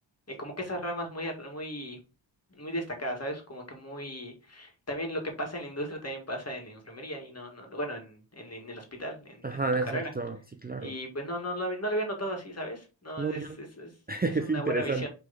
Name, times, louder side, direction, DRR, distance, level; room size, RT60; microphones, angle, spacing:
voice 1, 0.4-2.0 2.5-9.5 9.9-10.1 10.8-13.9 14.5-15.1, equal, 35° left, 1.8 m, -36 dB
voice 2, 9.4-11.0 13.2-13.6 14.1-15.1, right 3 dB, 20° right, 0.5 m, -30 dB
6.7 x 3.5 x 4.0 m
wide cardioid pair, 115°, 46 cm